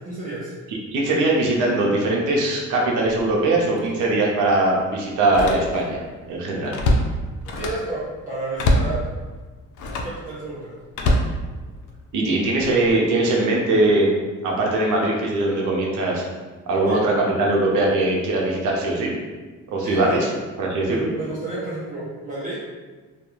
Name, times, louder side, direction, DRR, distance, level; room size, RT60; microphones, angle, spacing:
voice 1, 0.0-0.5 7.4-9.1 10.0-10.8 16.9-17.0 19.8-20.2 20.9-22.6, right 2 dB, 25° right, -8 dB, 0.6 m, -31 dB
voice 2, 0.9-6.0 6.3-6.8 12.1-14.1 14.4-16.2 16.7-19.1 19.7-20.3 20.6-21.1, right 2 dB, 85° right, -2 dB, 0.7 m, -21 dB
Slam, 3.1-3.3 3.8-3.9 5.2-6.0 6.4-7.9 8.6-9.0 9.7-10.2 10.9-12.0 12.6-12.9, left 1 dB, 75° left, 0.5 m, -23 dB
2.3 x 2.2 x 3.0 m, 1.3 s
cardioid pair, 90°, 30 cm